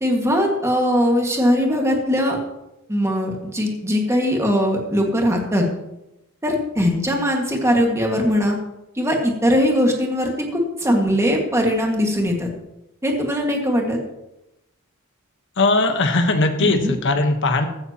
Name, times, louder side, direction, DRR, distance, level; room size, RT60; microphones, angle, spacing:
voice 1, 0.0-2.4 2.9-5.7 6.4-8.6 9.0-12.5 13.0-14.0 16.6-16.9, equal, 15° right, 1 dB, 1.9 m, -20 dB
voice 2, 15.6-17.7, left 2 dB, 60° left, 6 dB, 1.3 m, -19 dB
15.0 x 12.5 x 3.0 m, 0.91 s
head